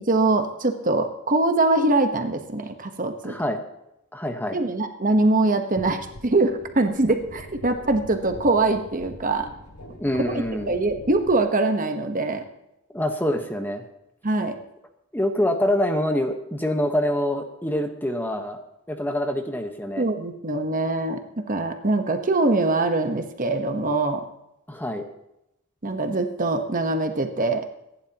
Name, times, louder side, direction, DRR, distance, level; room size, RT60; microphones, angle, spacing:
voice 1, 0.1-3.4 4.5-9.5 10.2-12.4 14.2-14.5 20.0-24.2 25.8-27.6, right 2 dB, 35° right, 6 dB, 1.2 m, -23 dB
voice 2, 3.2-3.6 4.1-4.6 10.0-10.7 12.9-13.8 15.1-18.6 18.9-20.0 24.7-25.1, left 1 dB, 10° left, 5 dB, 1.2 m, -25 dB
sound 1, 5.8-11.4, equal, 90° left, 2.9 m, -43 dB
25.0 x 11.0 x 3.0 m, 0.86 s
head